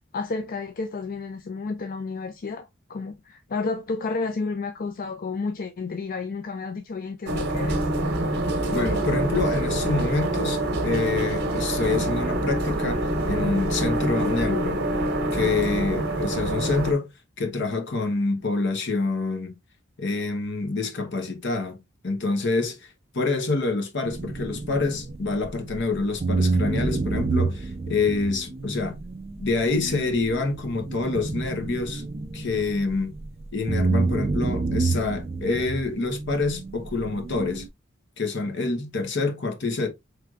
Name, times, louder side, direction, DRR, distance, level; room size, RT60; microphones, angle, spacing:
voice 1, 0.1-7.8, left 4 dB, 45° left, 0.4 m, -31 dB
sound 1, 7.3-16.9, right 1 dB, 55° right, 1.1 m, -26 dB
voice 2, 8.7-14.8 15.3-17.1 17.4-19.5 20.0-21.8 22.0-22.8 23.1-29.0 29.4-32.0 32.3-33.1 33.5-37.6 38.2-39.9, left 3 dB, 60° left, 1.0 m, -27 dB
sound 2, 24.0-25.8 26.2-33.3 33.7-37.7, right 3 dB, 30° right, 0.4 m, -28 dB
4.6 x 3.4 x 2.4 m
head